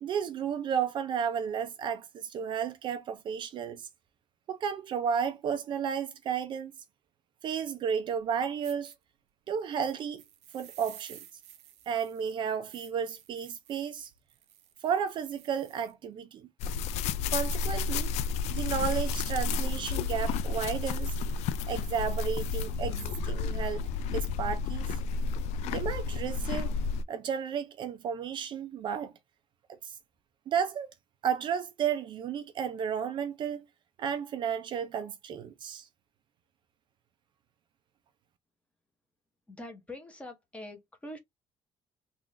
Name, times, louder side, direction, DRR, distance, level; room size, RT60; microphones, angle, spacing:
voice 1, 0.0-3.9 4.5-6.7 7.4-8.9 9.5-10.2 10.5-11.2 11.9-14.1 14.8-16.5 17.3-18.1 18.5-21.2 21.7-25.0 25.6-26.7 27.1-29.1 29.7-30.0 30.5-30.9 31.2-33.7 34.0-35.9, right 7 dB, 45° right, 0.5 m, -33 dB
sound 1, 8.2-8.3 8.6-9.0 9.8-15.9, right 11 dB, 85° right, 0.8 m, -53 dB
sound 2, 16.6-27.0, left 4 dB, 75° left, 0.4 m, -31 dB
voice 2, 39.5-41.2, left 1 dB, 10° left, 0.9 m, -44 dB
3.7 x 2.5 x 3.1 m
cardioid pair, 175°, 11 cm